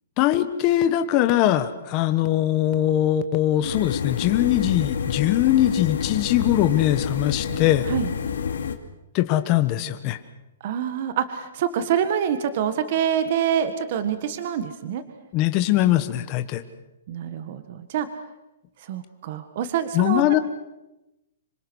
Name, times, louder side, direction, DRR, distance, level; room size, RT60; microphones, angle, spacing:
voice 1, 0.2-7.9 9.1-10.2 15.3-16.6 19.9-20.4, left 13 dB, 25° left, 9 dB, 1.3 m, -21 dB
sound 1, 3.6-8.8, left 7 dB, 85° left, 2.5 m, -28 dB
voice 2, 10.6-15.0 17.1-18.1 18.8-20.2, right 9 dB, 40° right, 10 dB, 1.6 m, -26 dB
26.5 x 24.0 x 6.3 m, 0.96 s
hypercardioid pair, 165°, 0 cm